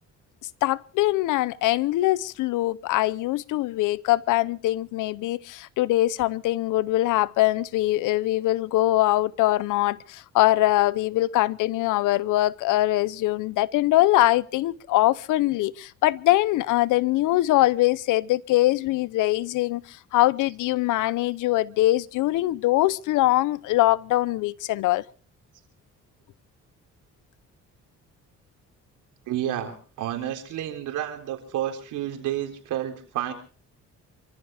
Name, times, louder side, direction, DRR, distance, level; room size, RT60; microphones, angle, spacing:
voice 1, 0.6-25.0, left 16 dB, 90° left, 0.7 m, -22 dB
voice 2, 29.3-33.3, right 11 dB, 90° right, 3.8 m, -30 dB
27.5 x 14.5 x 3.5 m
cardioid pair, 90°, 30 cm